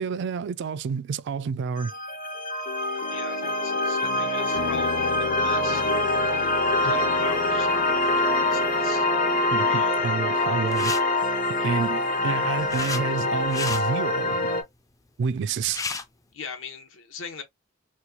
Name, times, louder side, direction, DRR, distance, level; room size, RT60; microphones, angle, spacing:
voice 1, 0.0-1.9 6.8-7.0 9.5-11.0 11.6-14.4 15.2-15.9, right 5 dB, 60° right, 0.3 m, -29 dB
sound 1, 1.8-14.6, left 2 dB, 45° left, 0.7 m, -25 dB
voice 2, 3.1-5.9 6.8-9.1 9.7-10.0 11.5-11.8 16.3-17.4, left 5 dB, 65° left, 1.0 m, -40 dB
sound 2, 4.6-9.7, left 7 dB, 85° left, 0.5 m, -40 dB
sound 3, 10.6-11.0 12.2-13.0 13.4-13.8 15.3-15.4 15.6-16.0, left 4 dB, 15° left, 0.4 m, -32 dB
4.3 x 2.2 x 2.7 m
head